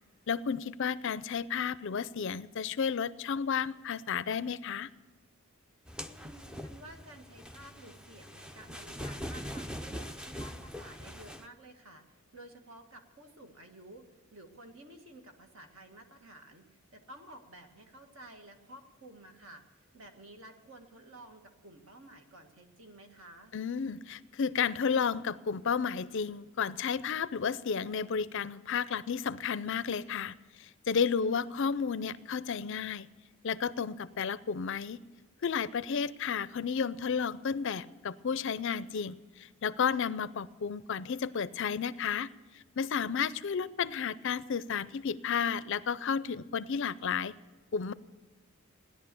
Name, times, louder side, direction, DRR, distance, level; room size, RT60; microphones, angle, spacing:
voice 1, 0.3-4.9 23.5-33.1 33.4-35.0 35.4-42.3 42.8-47.3 47.7-47.9, left 6 dB, 55° left, 17 dB, 0.4 m, -32 dB
sound 1, 5.9-11.5, equal, 5° right, 0.4 m, -42 dB
voice 2, 6.1-23.5 31.3-31.6, right 1 dB, 65° right, 5 dB, 1.8 m, -52 dB
16.5 x 11.0 x 6.9 m, 1.3 s
head